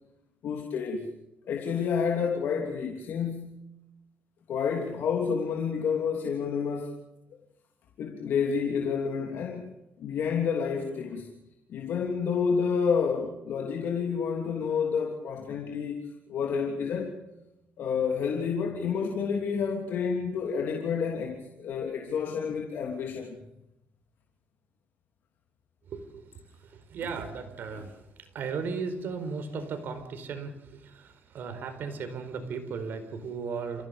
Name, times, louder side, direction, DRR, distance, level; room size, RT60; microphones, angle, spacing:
voice 1, 0.4-1.1 1.5-3.6 4.5-7.0 8.0-9.7 10.0-11.3 11.7-16.0 16.3-17.2 17.8-23.3 27.7-27.8, left 6 dB, 70° left, 3.1 m, -29 dB
voice 2, 25.9-26.2 26.7-27.9 28.3-33.9, right 5 dB, 65° right, 4.5 m, -36 dB
29.5 x 16.5 x 7.0 m
cardioid pair, 100°, 4 cm